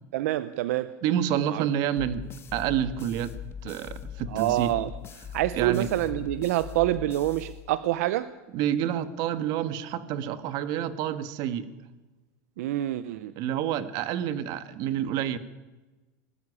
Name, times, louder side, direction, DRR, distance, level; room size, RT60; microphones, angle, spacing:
voice 1, 0.1-1.0 1.5-1.7 4.3-4.9 5.3-8.3 12.6-13.3, right 15 dB, 80° right, 14 dB, 0.8 m, -27 dB
voice 2, 1.0-2.2 2.5-3.3 3.6-4.7 5.5-5.9 8.5-11.7 13.3-15.4, right 10 dB, 55° right, 12 dB, 1.7 m, -28 dB
sound 1, 2.0-8.1, left 9 dB, 30° left, 1.5 m, -41 dB
20.0 x 13.0 x 10.0 m, 1.1 s
supercardioid pair, 125°, 8 cm